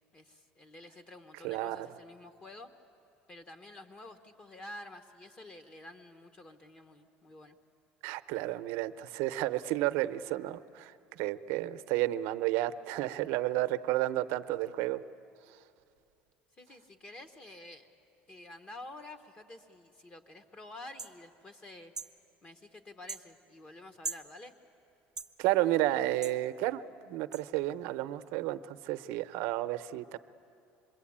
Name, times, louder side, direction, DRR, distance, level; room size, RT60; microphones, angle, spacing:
voice 1, 0.1-2.7 3.3-7.6 16.6-17.9 18.3-21.9 22.4-24.5, left 2 dB, 30° left, 7 dB, 1.2 m, -49 dB
voice 2, 1.4-1.9 8.0-15.0 25.4-30.2, right 15 dB, 80° right, 11 dB, 0.7 m, -32 dB
sound 1, 21.0-21.1 21.9-22.1 23.1-23.2 24.0-24.3 25.2-25.3 26.2-26.4 27.3-27.4, right 4 dB, 15° right, 0.8 m, -39 dB
26.5 x 22.0 x 8.7 m, 2.7 s
cardioid pair, 125°, 4 cm